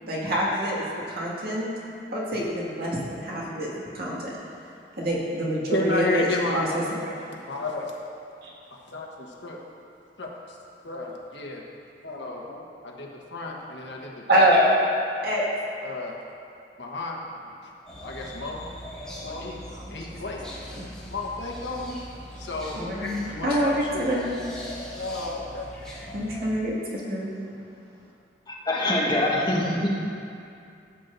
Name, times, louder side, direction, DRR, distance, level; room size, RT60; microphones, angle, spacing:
voice 1, 0.0-1.7 2.1-4.3 5.0-6.8 8.4-8.5 14.3-14.7 15.2-15.4 19.8-20.0 20.7-20.9 22.8-24.3 26.1-27.4, right 1 dB, 60° right, -5 dB, 2.0 m, -26 dB
voice 2, 5.7-6.6 7.5-7.9 8.7-9.6 10.2-10.6 10.8-11.6 12.0-14.5 15.8-16.2 16.8-17.2 18.0-18.6 19.2-19.6 19.9-20.4 21.1-22.0 22.4-24.1 24.9-25.7, left 2 dB, 75° left, -1 dB, 1.2 m, -32 dB
sound 1, 17.9-26.5, equal, 5° left, 1.6 m, -41 dB
voice 3, 28.5-29.9, left 1 dB, 25° left, -5 dB, 1.6 m, -24 dB
15.0 x 7.8 x 2.7 m, 2.5 s
head